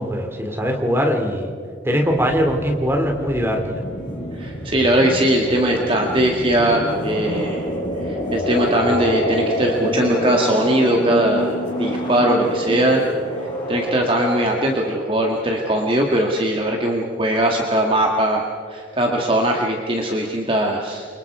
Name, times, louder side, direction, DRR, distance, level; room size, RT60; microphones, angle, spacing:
voice 1, 0.0-1.5 1.8-3.8, equal, 10° right, 2 dB, 2.8 m, -21 dB
sound 1, 2.1-15.4, equal, 45° left, 6.8 m, -27 dB
voice 2, 4.4-7.7 8.0-13.0 13.4-21.1, right 1 dB, 30° right, 1 dB, 1.8 m, -20 dB
29.5 x 24.5 x 4.8 m, 2.2 s
head